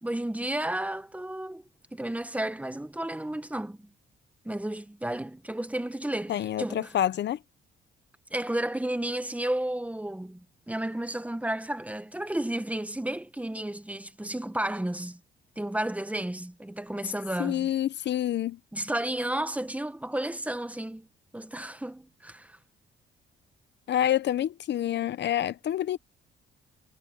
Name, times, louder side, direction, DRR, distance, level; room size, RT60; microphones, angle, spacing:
voice 1, 0.0-1.6 1.9-3.9 4.4-6.9 8.3-15.2 15.6-17.7 18.7-21.1 21.3-22.6, right 1 dB, 5° right, 1.4 m, -32 dB
voice 2, 6.3-7.4 17.4-18.6 23.9-26.0, left 11 dB, 60° left, 0.7 m, -27 dB
cardioid pair, 90°, 20 cm